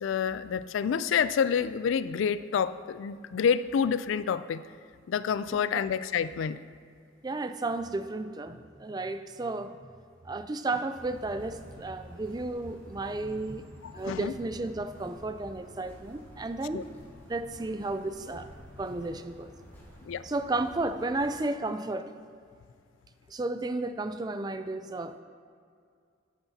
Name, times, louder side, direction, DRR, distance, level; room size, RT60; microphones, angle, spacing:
voice 1, 0.0-4.6 5.1-6.6 13.8-14.3 16.7-16.8 20.0-20.2, left 7 dB, 70° left, 15 dB, 0.3 m, -28 dB
voice 2, 7.2-9.8 10.2-13.7 13.9-16.8 17.3-18.5 18.8-19.5 20.2-22.1 23.3-25.2, right 2 dB, 20° right, 9 dB, 0.3 m, -33 dB
sound 1, 10.9-21.3, left 1 dB, 10° left, 2.6 m, -50 dB
13.0 x 9.4 x 2.8 m, 2.2 s
head